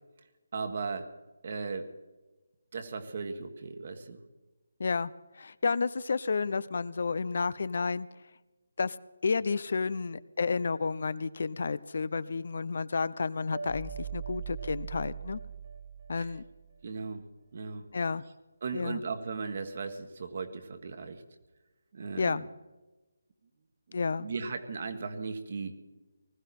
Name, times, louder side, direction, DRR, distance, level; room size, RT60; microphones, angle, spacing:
voice 1, 0.5-1.1 1.4-1.9 2.7-4.2 16.8-17.2 17.5-17.8 18.6-21.2 21.9-22.5 23.9-25.7, right 4 dB, 50° right, 7 dB, 1.7 m, -37 dB
voice 2, 4.8-8.1 8.8-9.0 9.2-15.4 16.1-16.4 17.9-18.2 18.7-19.0 22.2-22.5 23.9-24.3, left 4 dB, 55° left, 18 dB, 0.6 m, -31 dB
sound 1, 13.5-16.7, right 7 dB, 65° right, 2.1 m, -40 dB
19.5 x 15.0 x 4.3 m, 1.1 s
figure-of-eight pair, 155°, 0 cm